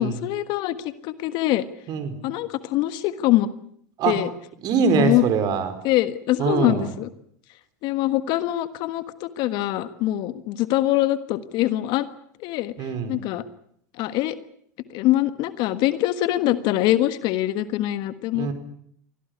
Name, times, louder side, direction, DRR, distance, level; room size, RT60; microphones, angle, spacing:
voice 1, 0.0-1.7 2.2-3.5 4.1-4.3 4.9-5.2 5.8-7.1 7.8-12.1 12.4-13.4 14.0-14.3 14.9-18.5, left 15 dB, 55° left, 13 dB, 1.5 m, -23 dB
voice 2, 4.6-5.7 6.4-6.9 12.8-13.2 18.3-18.5, right 6 dB, 50° right, 10 dB, 5.0 m, -23 dB
24.0 x 17.0 x 9.6 m, 0.67 s
hypercardioid pair, 90°, 9 cm